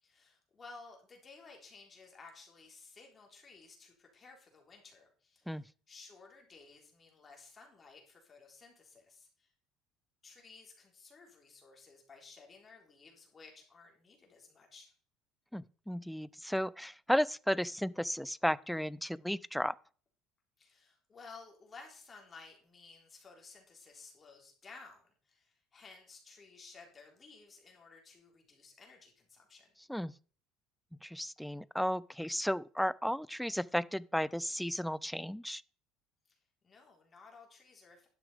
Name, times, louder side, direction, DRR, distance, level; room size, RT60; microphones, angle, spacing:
voice 1, 0.0-9.5 10.2-14.9 20.6-29.7 36.6-38.1, left 4 dB, 25° left, 3.7 m, -56 dB
voice 2, 15.5-19.7 29.9-30.1 31.0-35.6, equal, ahead, 0.3 m, -34 dB
11.5 x 6.1 x 4.9 m
cardioid pair, 130°, 0 cm